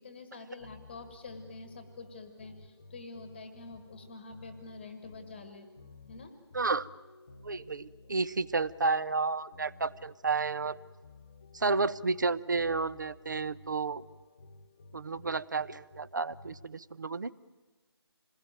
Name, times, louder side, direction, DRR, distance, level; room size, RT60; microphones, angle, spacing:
voice 1, 0.0-5.7 6.0-6.3, left 3 dB, 10° left, 8 dB, 1.5 m, -47 dB
sound 1, 0.6-16.7, left 2 dB, 25° left, 1.2 m, -54 dB
voice 2, 6.5-6.9 7.4-10.8 11.5-14.0 14.9-17.3, right 4 dB, 45° right, 18 dB, 0.8 m, -31 dB
27.5 x 21.0 x 9.0 m, 1.3 s
figure-of-eight pair, 175°, 14 cm